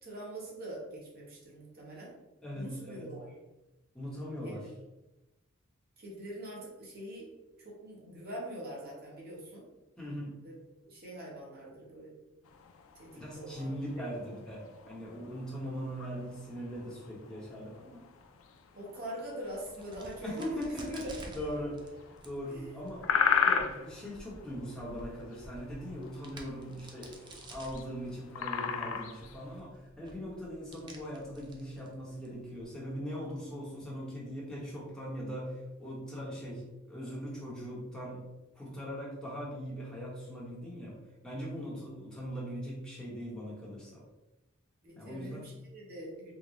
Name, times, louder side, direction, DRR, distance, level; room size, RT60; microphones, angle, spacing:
voice 1, 0.0-2.1 2.5-3.3 4.4-4.6 6.0-7.3 7.6-9.6 10.4-10.5 10.9-12.1 12.9-14.1 18.7-20.6 21.0-21.1 22.5-22.8 44.8-46.3, right 1 dB, 50° right, -4 dB, 1.1 m, -43 dB
voice 2, 2.4-3.1 3.9-4.7 10.0-10.3 13.2-18.1 20.2-21.1 21.3-23.1 23.4-38.2 38.6-41.0 41.2-44.0 45.0-45.4, equal, 5° left, -6 dB, 0.9 m, -40 dB
sound 1, 12.5-29.6, left 6 dB, 70° left, 0.4 m, -37 dB
Crack, 19.5-32.7, right 1 dB, 20° right, 0.4 m, -52 dB
3.8 x 2.1 x 3.0 m, 1.0 s
head